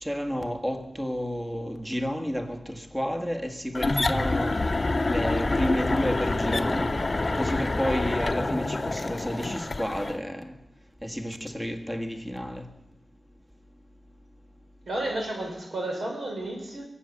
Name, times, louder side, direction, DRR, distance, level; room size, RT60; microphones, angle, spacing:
voice 1, 0.0-4.6 5.1-6.9 7.4-10.5 11.0-12.7, equal, 10° right, 1.7 m, -31 dB
sound 1, 3.7-10.2, left 2 dB, 35° left, 0.8 m, -27 dB
voice 2, 14.9-16.8, right 1 dB, 70° right, 4.1 m, -32 dB
23.0 x 8.5 x 6.7 m
wide cardioid pair, 75°, 0 cm